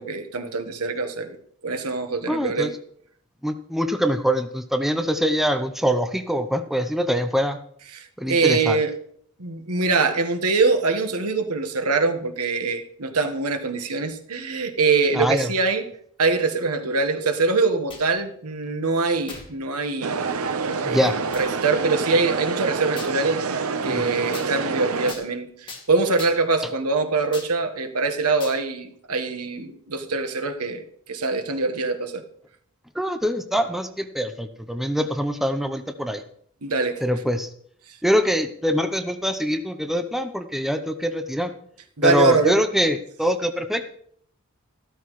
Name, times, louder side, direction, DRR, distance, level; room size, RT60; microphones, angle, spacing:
voice 1, 0.0-1.4 1.6-2.7 7.9-8.9 9.4-15.9 16.2-20.3 20.8-32.2 36.6-37.0 42.0-42.5, right 3 dB, 85° right, 7 dB, 1.3 m, -24 dB
voice 2, 2.3-2.7 3.4-7.6 8.2-8.8 15.1-15.5 20.8-21.2 23.8-24.1 32.9-36.2 37.0-37.5 38.0-41.5 42.0-43.9, equal, ahead, 7 dB, 0.6 m, -24 dB
sound 1, 17.9-18.2 19.3-19.5 20.2-20.3 21.3-21.5 23.0-23.2 24.3-24.5 25.1-25.3 25.7-25.9 26.2-26.6 27.3-27.5 28.4-28.6, left 3 dB, 20° left, 2.2 m, -39 dB
sound 2, 20.0-25.1, right 4 dB, 70° right, 0.8 m, -27 dB
13.5 x 12.5 x 3.1 m, 0.63 s
head